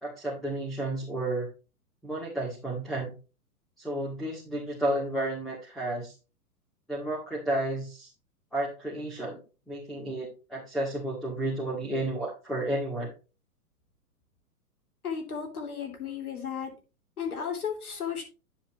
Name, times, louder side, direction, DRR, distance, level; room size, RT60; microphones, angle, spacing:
voice 1, 0.0-1.5 2.0-3.1 3.8-6.1 6.9-8.1 8.5-13.1, right 1 dB, ahead, -5 dB, 1.9 m, -32 dB
voice 2, 15.0-16.7 17.2-18.2, left 7 dB, 65° left, 2 dB, 3.1 m, -34 dB
10.0 x 7.4 x 2.9 m, 0.32 s
figure-of-eight pair, 110°, 47 cm